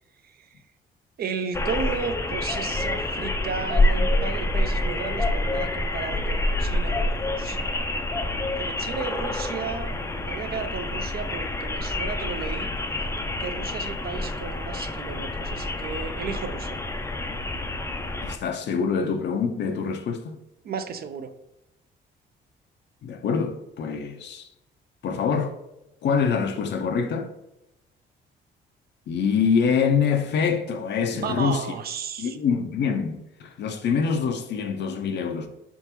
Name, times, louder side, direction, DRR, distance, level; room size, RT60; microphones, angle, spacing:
voice 1, 0.2-0.5 1.2-12.7 13.4-16.8 20.6-21.3 31.1-32.4, right 6 dB, 50° right, 0.4 m, -34 dB
sound 1, 1.5-18.4, left 2 dB, 15° left, 0.4 m, -27 dB
voice 2, 18.2-20.4 23.0-24.5 25.0-25.6 26.0-27.3 29.1-31.6 32.2-35.5, left 6 dB, 60° left, 0.5 m, -25 dB
3.9 x 3.5 x 3.0 m
cardioid pair, 90°, 20 cm